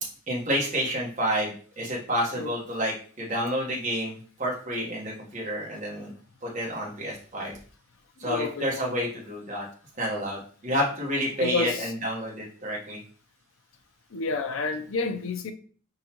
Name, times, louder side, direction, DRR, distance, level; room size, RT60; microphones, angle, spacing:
voice 1, 0.3-6.1 6.4-7.6 8.2-9.7 10.0-13.0, equal, 35° right, 1.2 m, -29 dB
voice 2, 8.2-9.1 11.4-11.9 14.1-15.5, left 4 dB, 70° left, 0.6 m, -30 dB
4.7 x 3.9 x 2.9 m
head